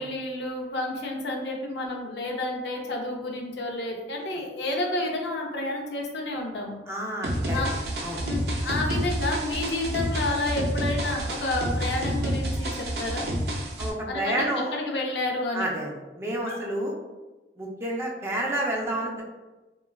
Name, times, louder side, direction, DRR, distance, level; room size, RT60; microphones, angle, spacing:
voice 1, 0.0-6.8 7.5-7.7 8.2-13.3 14.1-15.7 16.5-16.6, left 2 dB, 75° left, 0 dB, 0.5 m, -30 dB
voice 2, 6.9-7.6 8.0-8.2 13.8-14.7 15.5-15.9 16.2-16.9 17.6-19.2, right 1 dB, 15° right, -3 dB, 0.5 m, -29 dB
sound 1, 7.2-13.9, right 1 dB, 65° right, 0.5 m, -29 dB
3.2 x 2.3 x 2.2 m, 1.1 s
head